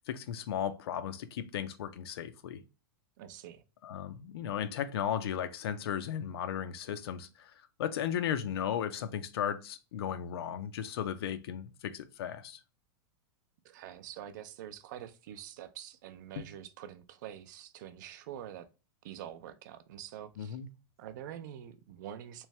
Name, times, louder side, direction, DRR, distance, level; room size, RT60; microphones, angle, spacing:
voice 1, 0.0-2.6 3.8-7.5 7.8-12.6 16.4-16.5 20.4-20.7, left 9 dB, 90° left, 0.5 m, -35 dB
voice 2, 3.2-3.6 13.6-18.7 19.0-20.6 21.0-22.5, right 10 dB, 50° right, 0.4 m, -46 dB
3.6 x 3.1 x 3.1 m
supercardioid pair, 175°, 13 cm